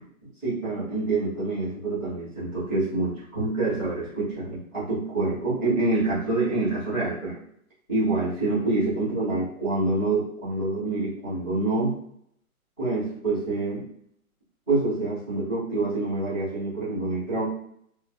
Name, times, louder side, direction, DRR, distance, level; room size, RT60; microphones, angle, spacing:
voice 1, 0.2-7.4 7.9-11.9 12.8-13.8 14.7-17.4, right 2 dB, 5° left, -20 dB, 0.8 m, -26 dB
2.9 x 2.1 x 2.3 m, 0.71 s
hypercardioid pair, 165°, 43 cm